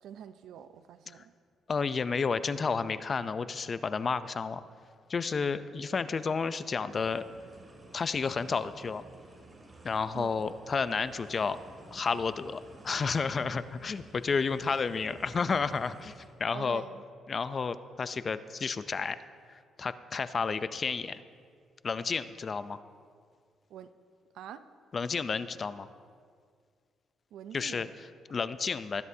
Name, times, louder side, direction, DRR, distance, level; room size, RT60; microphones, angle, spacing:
voice 1, 0.0-1.3 10.1-10.5 16.5-17.0 23.7-23.9 24.3-24.6 27.3-27.9, right 9 dB, 80° right, 12 dB, 0.5 m, -45 dB
voice 2, 1.7-4.6 5.1-7.2 7.9-9.0 9.8-11.6 11.9-16.1 16.4-16.8 17.3-19.2 19.8-21.2 21.8-22.8 24.9-25.9 27.5-29.0, left 5 dB, 40° left, 13 dB, 0.5 m, -31 dB
sound 1, 6.9-16.3, right 2 dB, 30° right, 2.3 m, -53 dB
20.0 x 10.5 x 2.8 m, 2.1 s
cardioid pair, 90°, 0 cm